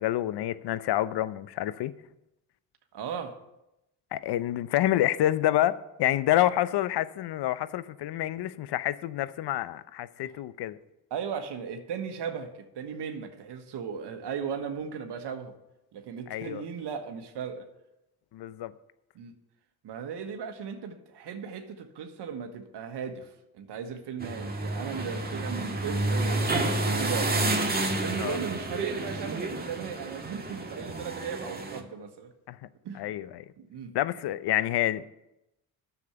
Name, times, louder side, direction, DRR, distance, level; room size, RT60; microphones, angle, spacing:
voice 1, 0.0-1.9 4.1-10.8 16.3-16.6 18.3-18.7 28.2-28.4 32.5-32.6 32.9-33.4 33.9-35.1, left 13 dB, 65° left, 0.7 m, -28 dB
voice 2, 2.9-3.4 10.2-10.3 11.1-15.5 15.9-17.7 19.1-19.3 19.8-27.4 28.0-32.3 32.8-33.1 33.6-33.9, right 7 dB, 65° right, 1.4 m, -37 dB
sound 1, 24.2-31.8, right 2 dB, 20° right, 1.8 m, -30 dB
9.7 x 7.2 x 6.9 m
supercardioid pair, 55°, 44 cm